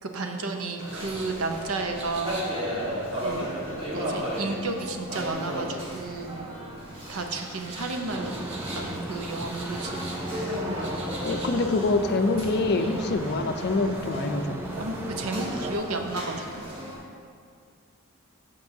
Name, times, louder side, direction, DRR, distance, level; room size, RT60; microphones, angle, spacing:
voice 1, 0.0-2.3 3.1-3.5 3.9-6.5 7.1-8.3 8.7-10.0 14.8-16.6, right 3 dB, 80° right, 4 dB, 0.7 m, -32 dB
sound 1, 0.8-17.0, equal, 25° right, 1.5 m, -35 dB
sound 2, 0.9-16.6, right 2 dB, 55° right, 1.4 m, -47 dB
sound 3, 8.1-15.8, right 1 dB, 10° right, 0.4 m, -36 dB
voice 2, 11.2-14.6, left 3 dB, 50° left, 7 dB, 0.5 m, -25 dB
13.5 x 5.4 x 2.7 m, 2.2 s
head